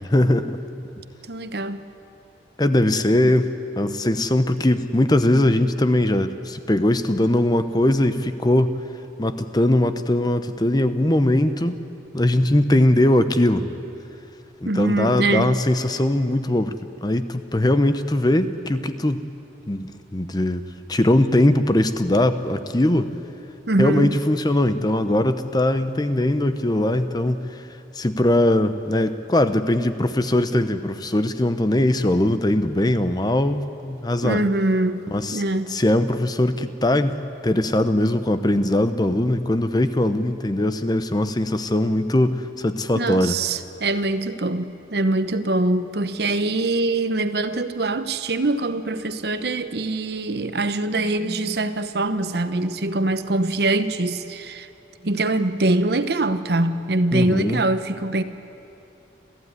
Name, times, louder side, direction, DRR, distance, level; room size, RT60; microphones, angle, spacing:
voice 1, 0.1-0.6 2.6-8.8 9.2-11.8 12.1-13.7 14.6-16.7 17.0-19.2 19.7-23.1 23.8-27.4 27.9-34.4 35.1-35.4 35.7-43.4 57.1-57.6, left 1 dB, 20° left, 11 dB, 0.8 m, -20 dB
voice 2, 1.3-1.9 3.1-3.3 14.6-15.6 23.7-24.2 34.2-35.0 35.3-35.8 42.9-54.7 55.0-58.2, right 2 dB, 60° right, 11 dB, 0.9 m, -23 dB
27.0 x 15.0 x 9.6 m, 2.8 s
head